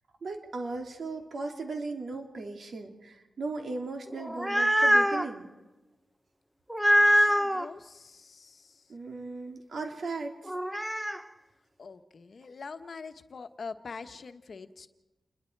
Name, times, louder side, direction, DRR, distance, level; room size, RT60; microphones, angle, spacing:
voice 1, 0.2-5.5 8.9-10.5, right 3 dB, 65° right, 3 dB, 3.1 m, -37 dB
sound 1, 4.1-5.3 6.7-7.7 10.5-11.2, equal, 5° right, 0.6 m, -24 dB
voice 2, 6.9-8.8 11.8-14.9, left 4 dB, 55° left, 8 dB, 1.2 m, -44 dB
29.0 x 21.5 x 4.7 m, 1.1 s
wide cardioid pair, 120°, 0 cm